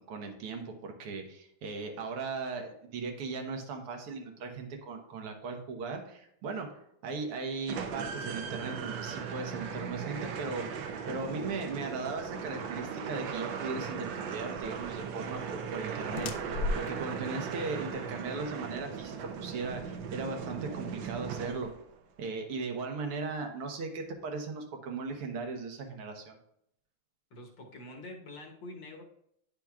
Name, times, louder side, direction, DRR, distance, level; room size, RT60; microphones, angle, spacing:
voice 1, 0.0-10.7 11.1-21.7 22.2-26.4, right 4 dB, 85° right, 3 dB, 2.0 m, -38 dB
sound 1, 7.7-21.9, right 6 dB, 70° right, 1.2 m, -38 dB
sound 2, 14.6-20.7, left 2 dB, 80° left, 1.4 m, -40 dB
voice 2, 27.3-29.0, left 2 dB, 60° left, 1 dB, 1.8 m, -46 dB
10.0 x 6.0 x 2.4 m, 0.73 s
omnidirectional pair, 2.4 m